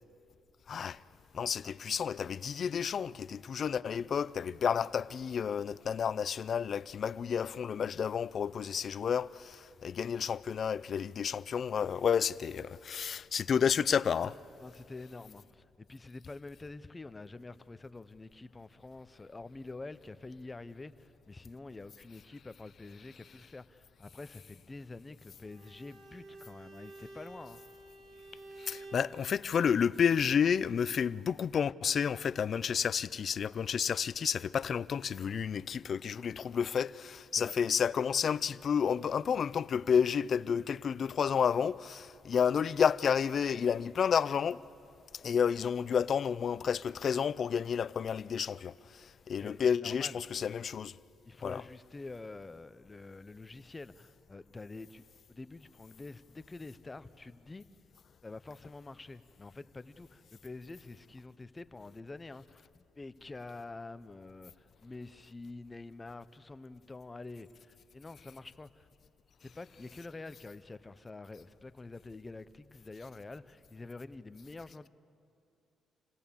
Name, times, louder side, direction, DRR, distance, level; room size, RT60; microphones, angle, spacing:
voice 1, 0.7-1.0 1.3-14.4 28.6-44.6 45.1-51.0 51.4-51.6, left 7 dB, 55° left, 0.4 m, -31 dB
voice 2, 14.6-27.6 37.3-37.5 49.4-50.2 51.2-55.0 55.3-57.6 58.2-68.9 69.4-74.9, left 3 dB, 20° left, 0.7 m, -47 dB
Bowed string instrument, 25.4-29.1, right 2 dB, 50° right, 4.8 m, -51 dB
27.0 x 16.5 x 7.1 m
cardioid pair, 90°, 0 cm